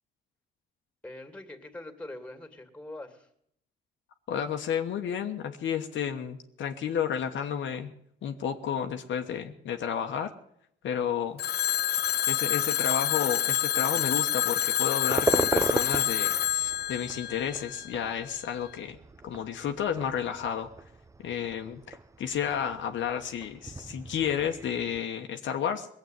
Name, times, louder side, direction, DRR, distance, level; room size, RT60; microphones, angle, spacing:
voice 1, 1.0-3.3, left 1 dB, 5° left, 6 dB, 2.6 m, -43 dB
voice 2, 4.3-7.9 8.2-10.3 10.8-11.4 12.3-19.0 19.2-20.7 21.2-25.9, left 8 dB, 70° left, 4 dB, 1.2 m, -31 dB
Telephone, 11.4-18.2, left 12 dB, 55° left, 0.5 m, -28 dB
sound 1, 15.1-25.0, right 3 dB, 15° right, 0.6 m, -36 dB
19.0 x 8.1 x 9.4 m, 0.71 s
cardioid pair, 90°, 20 cm